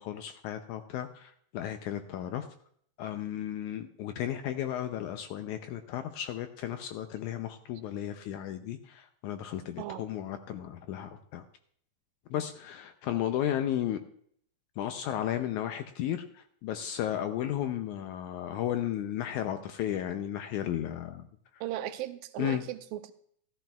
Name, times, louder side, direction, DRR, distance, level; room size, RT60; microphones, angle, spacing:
voice 1, 0.0-2.5 3.0-11.4 12.3-14.0 14.8-21.3 21.5-21.6 22.4-22.6, left 11 dB, 80° left, 8 dB, 1.8 m, -34 dB
voice 2, 21.6-23.1, right 13 dB, 85° right, 10 dB, 2.3 m, -37 dB
14.5 x 13.5 x 2.3 m, 0.63 s
omnidirectional pair, 3.9 m